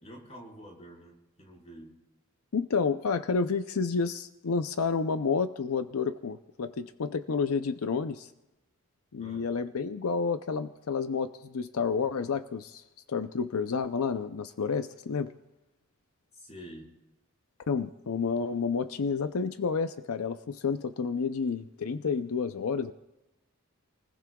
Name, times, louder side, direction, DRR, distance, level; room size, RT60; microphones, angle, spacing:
voice 1, 0.0-1.9 9.2-9.5 16.3-16.9, equal, 30° left, -3 dB, 4.9 m, -48 dB
voice 2, 2.5-8.3 9.1-15.3 17.7-22.9, left 5 dB, 85° left, 10 dB, 0.5 m, -30 dB
29.0 x 20.0 x 2.3 m, 0.97 s
head